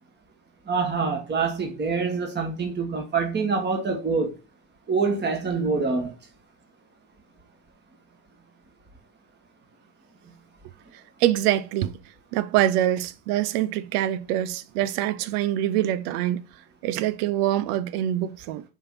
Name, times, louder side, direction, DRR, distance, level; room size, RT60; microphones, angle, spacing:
voice 1, 0.7-4.4 4.9-6.2, right 4 dB, 20° right, 1.6 m, -25 dB
voice 2, 11.2-12.0 12.3-16.4 16.8-18.6, right 12 dB, 70° right, 0.8 m, -24 dB
5.4 x 3.6 x 5.7 m
hypercardioid pair, 80°, 48 cm